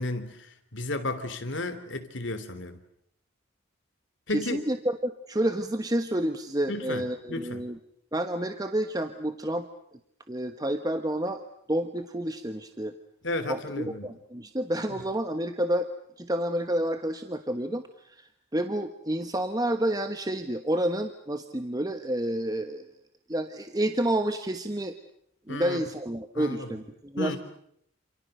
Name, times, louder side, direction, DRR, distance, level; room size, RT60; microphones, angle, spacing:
voice 1, 0.0-2.8 4.3-4.6 6.7-7.7 13.2-14.1 25.5-25.8 26.3-26.8 27.2-27.4, left 2 dB, 60° left, 3.1 m, -33 dB
voice 2, 4.3-7.8 8.1-9.7 10.3-11.4 11.7-12.9 13.5-15.9 16.2-22.9 23.3-24.9 25.5-27.4, right 1 dB, 20° right, 1.1 m, -29 dB
28.5 x 28.0 x 6.7 m
head